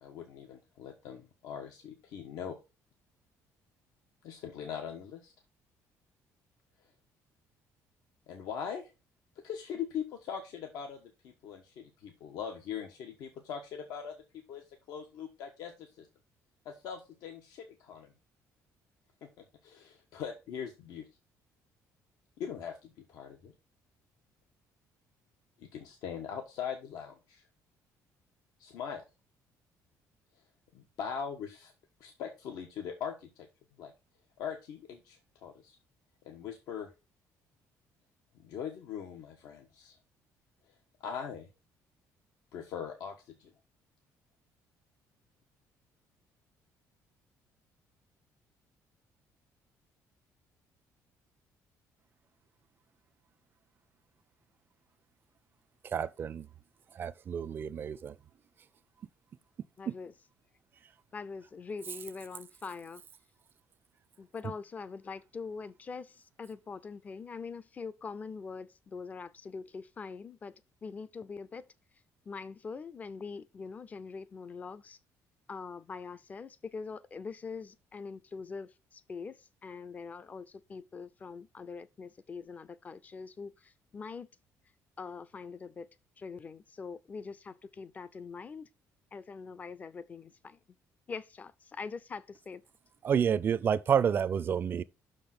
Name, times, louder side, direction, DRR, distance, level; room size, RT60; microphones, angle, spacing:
voice 1, 0.0-2.6 4.2-5.3 8.3-8.9 9.4-14.2 14.5-16.1 16.6-18.1 19.2-21.1 22.4-23.5 25.6-27.4 28.6-29.0 30.7-31.7 32.0-33.5 33.8-33.9 34.4-35.8 36.2-36.9 38.4-40.0 41.0-41.5 42.5-43.5, left 7 dB, 85° left, 1.3 m, -41 dB
voice 2, 55.8-56.5 56.9-58.2 59.9-60.0 93.0-94.8, right 8 dB, 35° right, 0.5 m, -29 dB
voice 3, 59.8-60.1 61.1-63.0 64.2-70.5 70.8-71.6 72.3-75.0 75.5-84.3 85.0-85.9 86.2-88.7 89.1-90.6 91.1-92.6, left 5 dB, 25° left, 0.5 m, -43 dB
6.2 x 5.2 x 5.9 m
cardioid pair, 150°, 6 cm